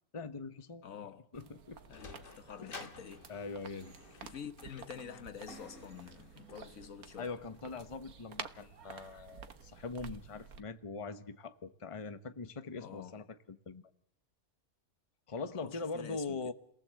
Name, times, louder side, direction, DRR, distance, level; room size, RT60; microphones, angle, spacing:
voice 1, 0.1-0.8 1.3-1.8 2.6-2.7 3.3-3.9 7.2-13.8 15.3-16.5, left 4 dB, 25° left, 1.0 m, -42 dB
voice 2, 0.8-1.3 1.9-3.3 4.2-7.3 12.8-13.2 15.5-16.4, left 8 dB, 70° left, 1.5 m, -48 dB
sound 1, 1.3-10.6, right 6 dB, 85° right, 1.6 m, -51 dB
Sliding door, 1.4-8.0, left 4 dB, 40° left, 1.4 m, -54 dB
sound 2, 5.5-9.1, left 1 dB, 90° left, 3.4 m, -59 dB
29.5 x 18.5 x 7.6 m
omnidirectional pair, 1.5 m